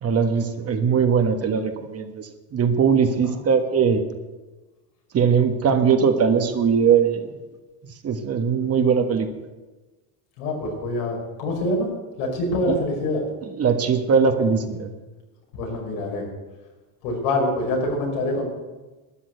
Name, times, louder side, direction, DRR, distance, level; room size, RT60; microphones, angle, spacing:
voice 1, 0.0-4.0 5.1-7.3 8.0-9.3 12.7-12.8 13.5-14.9, right 6 dB, 30° right, 6 dB, 1.4 m, -20 dB
voice 2, 10.4-11.9 12.2-13.2 15.5-16.3 17.0-18.5, left 1 dB, 90° left, -1 dB, 5.8 m, -25 dB
13.0 x 9.8 x 8.0 m, 1.2 s
cardioid pair, 130°, 45 cm